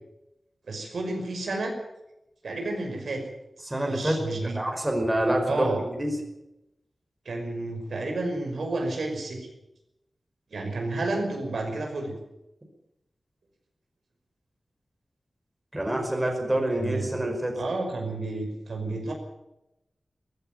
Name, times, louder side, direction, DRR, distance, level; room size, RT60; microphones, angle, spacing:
voice 1, 0.7-1.8 2.4-3.2 3.9-4.6 5.5-5.8 7.3-9.5 10.5-12.1 16.7-17.2 17.6-19.1, right 2 dB, 85° right, 3 dB, 5.8 m, -31 dB
voice 2, 3.6-4.3 4.5-6.1 15.7-17.6, right 1 dB, 15° right, 2 dB, 5.2 m, -27 dB
18.5 x 15.5 x 9.2 m, 0.90 s
wide cardioid pair, 115°, 0 cm